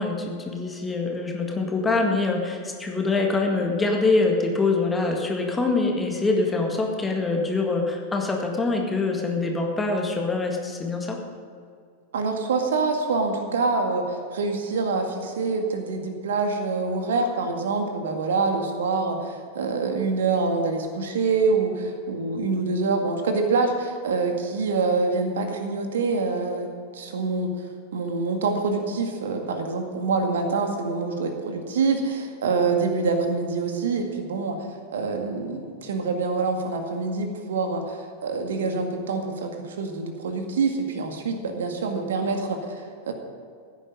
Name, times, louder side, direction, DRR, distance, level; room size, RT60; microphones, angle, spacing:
voice 1, 0.0-11.2, left 3 dB, 15° left, 1 dB, 1.9 m, -24 dB
voice 2, 12.1-27.5 27.9-34.6 34.9-43.1, right 4 dB, 60° right, 4 dB, 2.0 m, -26 dB
16.0 x 9.9 x 5.4 m, 2.3 s
figure-of-eight pair, 90°, 0 cm